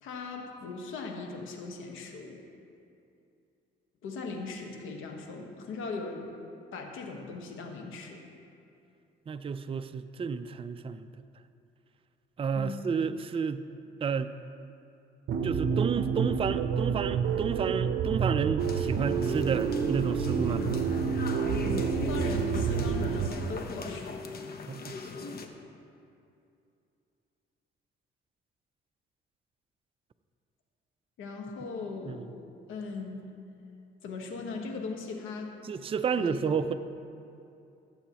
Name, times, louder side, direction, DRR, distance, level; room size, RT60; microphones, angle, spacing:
voice 1, 0.0-2.4 4.0-6.3 6.7-8.2 12.5-12.7 21.9-24.2 31.2-32.3 32.7-33.3 34.0-35.5 36.2-36.3, left 4 dB, 85° left, 2 dB, 1.3 m, -39 dB
voice 2, 9.3-11.1 12.4-13.6 14.0-14.3 15.4-20.6 24.7-25.0 32.1-32.2 35.6-36.7, right 6 dB, 30° right, 10 dB, 0.4 m, -31 dB
sound 1, 15.3-23.3, right 6 dB, 70° right, 0.7 m, -28 dB
sound 2, 18.6-25.5, left 4 dB, 50° left, 0.9 m, -40 dB
16.5 x 7.8 x 2.9 m, 2.6 s
cardioid pair, 90°, 20 cm